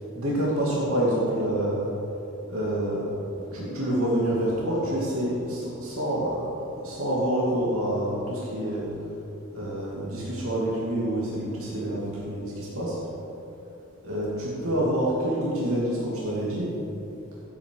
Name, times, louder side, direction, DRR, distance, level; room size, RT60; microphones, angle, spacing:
voice 1, 0.0-1.9 2.5-3.1 3.5-6.5 6.8-8.9 9.5-13.0 14.0-16.7, right 1 dB, 75° right, -6 dB, 2.7 m, -27 dB
15.5 x 9.1 x 4.8 m, 2.9 s
head